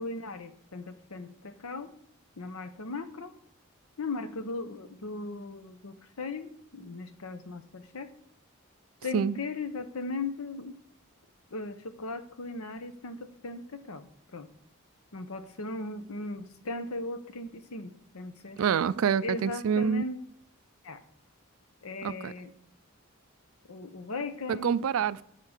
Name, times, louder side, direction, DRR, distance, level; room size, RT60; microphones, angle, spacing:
voice 1, 0.0-1.9 2.4-3.3 4.0-8.1 9.0-10.7 11.5-14.1 14.3-14.5 15.1-18.6 19.2-20.2 20.8-21.0 21.8-22.5 23.7-24.9, left 3 dB, 85° left, 0.9 m, -38 dB
voice 2, 18.6-20.0 22.0-22.3 24.5-25.2, right 7 dB, 70° right, 0.4 m, -27 dB
10.5 x 3.7 x 6.6 m
head